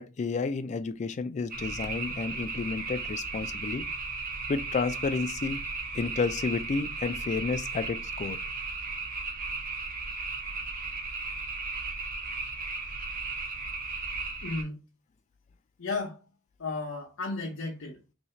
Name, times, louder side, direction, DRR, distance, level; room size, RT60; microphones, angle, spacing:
voice 1, 0.0-3.9 4.5-5.6 5.9-8.4, left 4 dB, 35° left, 0.3 m, -31 dB
sound 1, 1.5-14.6, right 3 dB, 45° right, 0.7 m, -35 dB
voice 2, 14.4-14.8 15.8-16.2 16.6-18.0, left 3 dB, 65° left, 0.7 m, -34 dB
2.8 x 2.7 x 4.3 m
head